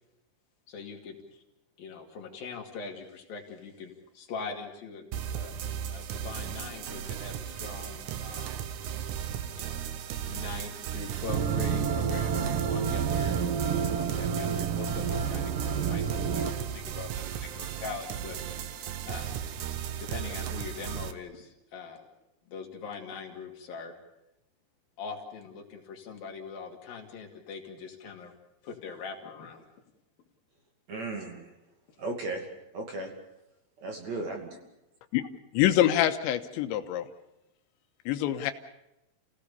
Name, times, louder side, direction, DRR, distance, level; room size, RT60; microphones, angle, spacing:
voice 1, 0.7-1.4 1.8-5.5 5.9-8.6 9.6-9.9 10.2-18.7 19.1-19.4 20.0-22.0 22.5-24.0 25.0-28.3 28.6-29.7, left 5 dB, 55° left, 2 dB, 4.0 m, -42 dB
sound 1, 5.1-21.1, right 9 dB, 80° right, 1.7 m, -36 dB
sound 2, 11.3-16.5, right 7 dB, 60° right, 2.5 m, -29 dB
voice 2, 30.9-31.5 32.0-32.4 32.7-33.1 33.8-34.6, right 2 dB, 45° right, 2 dB, 3.4 m, -35 dB
voice 3, 35.5-37.1 38.1-38.5, left 12 dB, 90° left, 8 dB, 3.4 m, -25 dB
29.5 x 17.0 x 7.0 m, 0.90 s
omnidirectional pair, 5.1 m